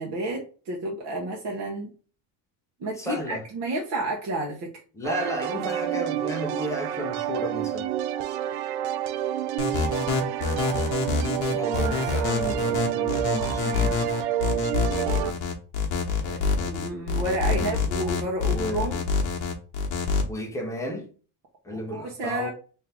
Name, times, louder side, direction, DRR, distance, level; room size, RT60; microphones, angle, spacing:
voice 1, 0.0-1.9 2.8-4.7 16.2-19.0 21.7-22.5, right 2 dB, 45° right, 0.9 m, -31 dB
voice 2, 3.0-3.4 4.9-7.9 11.5-13.9 17.5-17.9 18.4-19.0 20.3-21.1 21.6-22.5, equal, 5° left, 0.6 m, -33 dB
sound 1, 5.0-15.3, right 12 dB, 85° right, 0.5 m, -28 dB
sound 2, 9.6-20.2, left 5 dB, 45° left, 1.0 m, -26 dB
3.5 x 2.7 x 3.3 m
cardioid pair, 170°, 41 cm